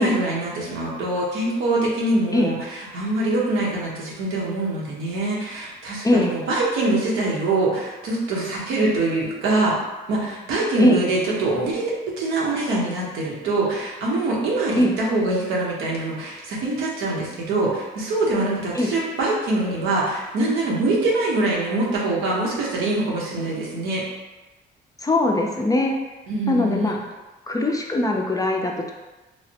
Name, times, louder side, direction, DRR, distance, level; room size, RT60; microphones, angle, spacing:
voice 1, 0.0-2.6 2.9-9.8 10.1-24.0 26.3-26.9, right 2 dB, 85° right, -5 dB, 0.9 m, -24 dB
voice 2, 6.0-6.4 10.8-11.0 14.7-14.9 18.7-18.9 25.0-26.0 26.5-27.0 27.5-28.9, left 1 dB, 20° left, 1 dB, 0.3 m, -20 dB
3.2 x 2.0 x 2.7 m, 1.1 s
cardioid pair, 90°, 20 cm